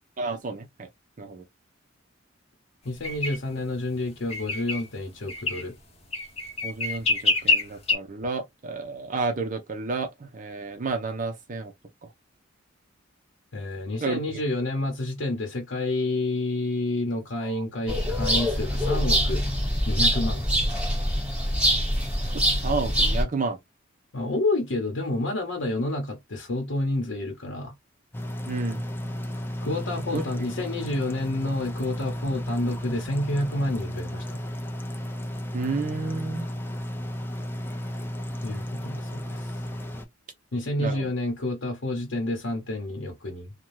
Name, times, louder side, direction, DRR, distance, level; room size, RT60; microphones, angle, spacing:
voice 1, 0.2-0.9 1.2-1.4 6.6-11.7 12.0-12.1 14.0-14.4 17.4-17.6 22.6-23.6 28.5-28.8 30.1-30.2 35.5-36.5 40.8-41.1, right 3 dB, 40° right, 0.5 m, -31 dB
voice 2, 2.8-5.8 13.5-19.4 19.9-20.5 24.1-27.7 29.6-34.4 38.4-39.5 40.5-43.5, left 2 dB, 70° left, 0.9 m, -29 dB
sound 1, 3.0-3.4 4.3-4.8 5.3-5.6 6.1-8.0, left 3 dB, 30° left, 0.9 m, -25 dB
sound 2, 17.9-23.2, equal, 5° right, 1.3 m, -24 dB
sound 3, 28.1-40.0, equal, 10° left, 0.4 m, -34 dB
2.7 x 2.2 x 3.1 m
head